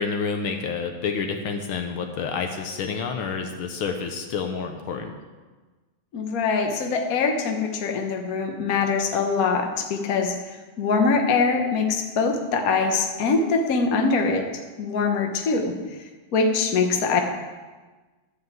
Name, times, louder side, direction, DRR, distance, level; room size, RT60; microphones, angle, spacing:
voice 1, 0.0-5.1, left 5 dB, 75° left, 4 dB, 1.7 m, -29 dB
voice 2, 6.1-14.4 14.8-15.8 16.3-17.2, left 4 dB, 50° left, 3 dB, 1.4 m, -23 dB
12.5 x 5.6 x 7.7 m, 1.3 s
omnidirectional pair, 2.4 m